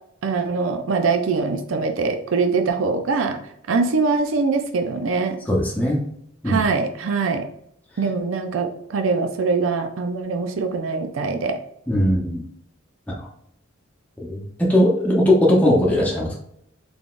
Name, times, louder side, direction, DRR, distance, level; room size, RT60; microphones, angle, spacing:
voice 1, 0.2-3.4 3.7-5.4 6.5-7.5 8.0-11.6, right 4 dB, 75° right, 7 dB, 0.5 m, -23 dB
voice 2, 5.5-6.0 6.4-6.6 11.9-12.4 13.1-13.3 14.2-16.4, left 1 dB, 5° left, -4 dB, 0.8 m, -19 dB
4.0 x 3.4 x 2.4 m, 0.71 s
head